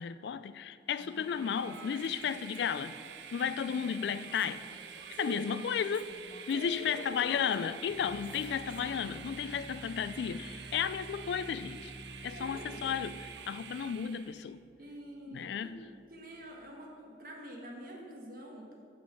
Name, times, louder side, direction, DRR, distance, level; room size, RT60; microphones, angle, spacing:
voice 1, 0.0-2.9 3.3-4.6 5.2-6.2 6.5-11.9 12.2-14.6 15.3-15.8, left 7 dB, 70° left, 14 dB, 0.3 m, -34 dB
Female speech woman speaking, 1.0-2.9 3.3-5.3 5.8-9.9, left 1 dB, 30° left, 0.7 m, -55 dB
Train, 1.0-14.5, right 7 dB, 75° right, 0.5 m, -48 dB
voice 2, 5.1-5.5 6.5-7.4 12.3-12.8 14.8-15.7 16.1-18.7, right 1 dB, 50° right, -1 dB, 1.5 m, -46 dB
Organ, 6.1-16.6, right 1 dB, 20° right, 0.7 m, -51 dB
8.2 x 6.1 x 5.9 m, 2.4 s
head